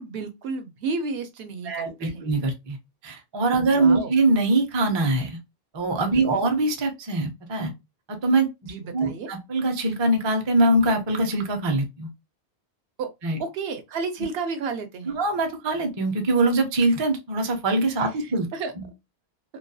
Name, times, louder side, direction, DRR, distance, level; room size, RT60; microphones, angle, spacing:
voice 1, 0.0-2.2 3.5-4.1 6.1-6.4 8.7-9.3 13.0-13.1 13.4-15.2 18.0-18.7, right 4 dB, 75° right, 0.8 m, -32 dB
voice 2, 1.7-2.8 3.0-5.4 5.7-7.7 8.1-12.1 13.2-13.4 15.1-18.5 18.8-18.9, right 2 dB, 35° right, 0.4 m, -23 dB
2.3 x 2.2 x 2.5 m
omnidirectional pair, 1.1 m